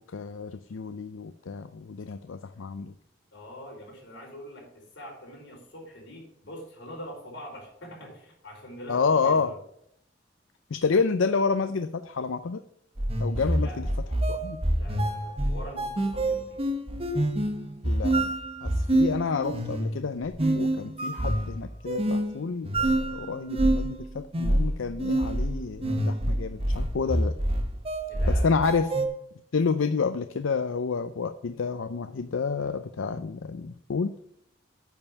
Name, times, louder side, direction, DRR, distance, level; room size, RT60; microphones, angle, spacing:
voice 1, 0.1-2.9 8.9-9.5 10.7-12.6 13.2-13.9 14.3-14.6 17.8-18.3 18.6-27.3 28.3-28.9 29.5-34.1, left 5 dB, 85° left, 10 dB, 0.5 m, -29 dB
voice 2, 3.3-9.6 13.5-13.9 14.7-16.6 28.1-28.6, equal, 65° left, -2 dB, 4.6 m, -43 dB
sound 1, 13.0-29.1, right 1 dB, 30° right, 1.1 m, -27 dB
9.3 x 5.5 x 7.1 m, 0.72 s
head